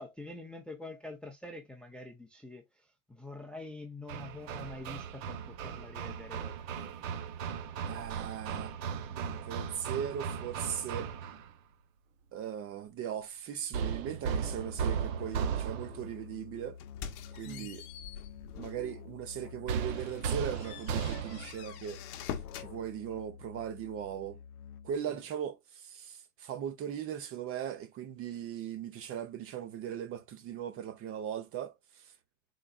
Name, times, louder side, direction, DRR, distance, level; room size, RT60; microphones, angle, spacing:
voice 1, 0.0-7.0 17.4-17.7 25.1-25.2 28.3-28.4, left 2 dB, ahead, 0.5 m, -46 dB
Hammer, 4.1-11.5 13.7-16.1 19.7-21.6, right 7 dB, 65° right, 0.9 m, -36 dB
voice 2, 7.8-8.7 9.1-11.1 12.3-16.8 17.3-17.9 18.6-22.0 22.5-24.4 24.8-32.1, right 9 dB, 30° right, 0.7 m, -39 dB
Musical instrument, 14.4-25.2, left 7 dB, 90° left, 0.6 m, -49 dB
sound 1, 16.8-18.9 19.3-19.5 19.9-22.7, left 9 dB, 50° left, 0.9 m, -44 dB
4.0 x 3.1 x 2.3 m
hypercardioid pair, 115°, 43 cm